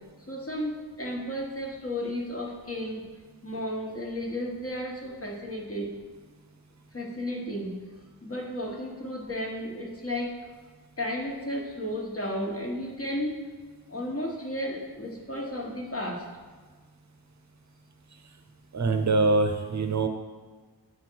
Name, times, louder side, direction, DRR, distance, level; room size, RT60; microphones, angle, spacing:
voice 1, 0.3-3.0 3.4-6.0 6.9-7.7 8.2-10.4 11.0-13.5 13.9-16.2, equal, 35° left, -1 dB, 1.3 m, -33 dB
voice 2, 18.7-20.1, right 3 dB, 45° right, 6 dB, 0.8 m, -24 dB
8.6 x 3.7 x 4.6 m, 1.4 s
wide cardioid pair, 75°, 40 cm